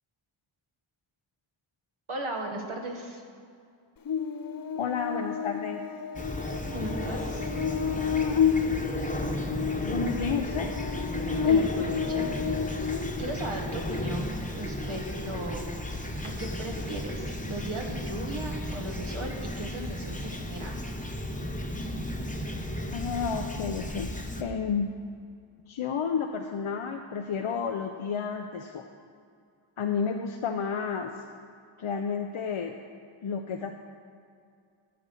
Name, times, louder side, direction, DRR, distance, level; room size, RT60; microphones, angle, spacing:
voice 1, 2.1-3.2 6.7-7.5 11.4-12.3 13.2-15.6 16.2-20.8, right 1 dB, 85° right, 1 dB, 1.6 m, -37 dB
Buzz, 4.1-13.5, left 7 dB, 50° left, 0.5 m, -30 dB
voice 2, 4.8-5.8 9.8-10.7 22.9-24.1 24.4-24.9 25.7-28.8 29.8-31.1 31.8-32.7 33.2-33.7, left 6 dB, 85° left, 4 dB, 0.7 m, -31 dB
Fowl / Chirp tweet, 6.2-24.4, left 1 dB, 15° left, 0.9 m, -34 dB
8.6 x 8.1 x 7.0 m, 2.3 s
wide cardioid pair, 60°, 48 cm